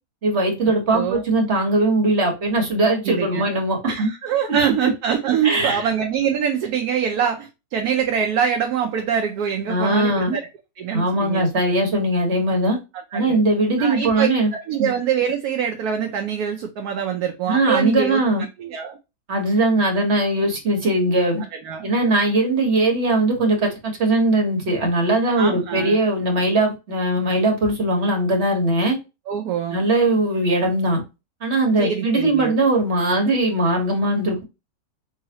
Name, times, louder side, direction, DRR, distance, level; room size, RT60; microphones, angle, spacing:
voice 1, 0.2-4.1 4.8-4.9 5.4-5.9 9.7-10.4 10.9-12.8 13.1-14.5 14.8-14.9 17.5-18.4 19.3-21.4 21.8-29.0 29.7-31.0 31.4-34.4, right 2 dB, 40° right, 1.6 m, -20 dB
voice 2, 0.9-1.2 3.0-3.5 3.8-10.5 10.8-11.4 13.1-13.4 13.8-18.2 18.6-19.0 21.6-21.9 25.4-26.0 29.3-29.9 31.8-32.5, right 8 dB, 70° right, 1.1 m, -24 dB
4.6 x 3.0 x 2.8 m
omnidirectional pair, 1.9 m